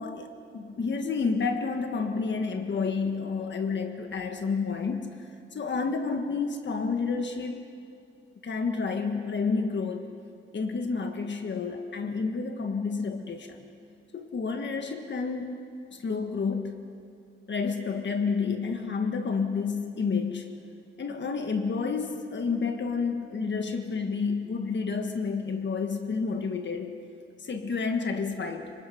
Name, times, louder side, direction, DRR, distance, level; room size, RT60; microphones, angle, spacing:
voice 1, 0.0-5.2 5.5-7.6 8.4-10.1 10.5-13.7 14.1-15.5 15.9-16.8 17.5-20.5 21.0-27.0 27.4-28.7, left 4 dB, 60° left, 5 dB, 1.6 m, -30 dB
26.5 x 25.5 x 5.8 m, 2.5 s
wide cardioid pair, 160°, 21 cm